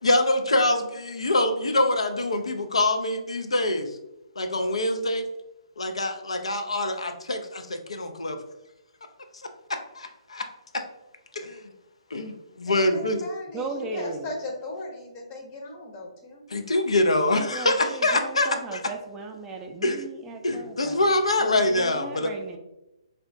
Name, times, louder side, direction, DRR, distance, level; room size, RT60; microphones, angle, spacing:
voice 1, 0.0-3.9 4.4-5.2 5.8-8.4 9.9-10.5 10.7-10.8 11.3-11.6 12.1-13.2 16.5-18.8 19.8-20.0 20.4-22.3, left 2 dB, 85° left, 6 dB, 0.4 m, -25 dB
voice 2, 12.7-16.4, left 2 dB, 30° left, 0 dB, 0.7 m, -37 dB
voice 3, 13.5-14.3 17.3-21.0 21.4-22.6, right 3 dB, 15° right, 3 dB, 0.4 m, -37 dB
3.5 x 2.2 x 2.5 m, 0.93 s
figure-of-eight pair, 135°, 3 cm